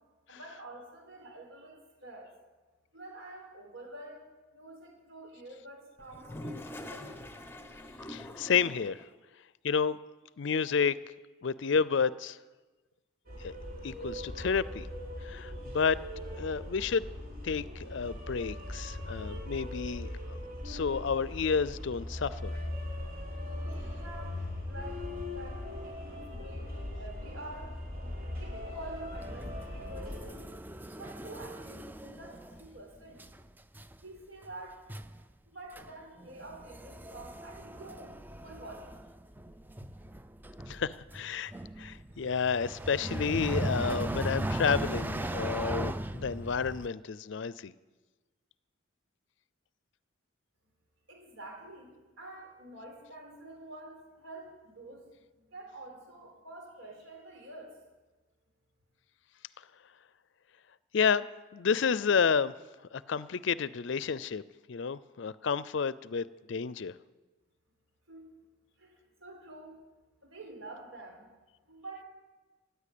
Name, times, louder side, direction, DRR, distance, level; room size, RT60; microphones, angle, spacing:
voice 1, 0.3-2.3 2.9-4.3 4.5-7.3 24.0-24.4 24.6-25.1 25.3-26.7 27.0-27.7 28.4-30.5 30.9-33.2 34.0-34.9 35.5-39.0 51.1-55.0 55.4-57.7 68.1-68.2 68.8-69.8 70.2-71.3 71.7-72.0, right 2 dB, 75° right, 2 dB, 4.2 m, -48 dB
Toilet flush, 6.0-9.1, left 1 dB, 10° left, 0.9 m, -44 dB
voice 2, 8.1-9.0 9.6-10.0 10.4-10.9 11.4-12.4 13.4-13.6 13.8-14.9 15.2-16.0 16.4-17.1 17.4-20.4 20.6-22.5 40.7-41.5 41.8-47.7 60.9-61.3 61.5-62.5 62.9-64.4 64.7-66.9, left 6 dB, 60° left, 18 dB, 0.5 m, -30 dB
sound 1, 13.3-30.2, left 1 dB, 45° right, 3.9 m, -40 dB
sound 2, 29.2-32.8 33.2-33.4 33.7-34.0 34.4-34.5 34.9-35.2 35.7-35.9 36.2-46.9, right 1 dB, 10° right, 0.4 m, -38 dB
15.0 x 9.6 x 8.5 m, 1.2 s
head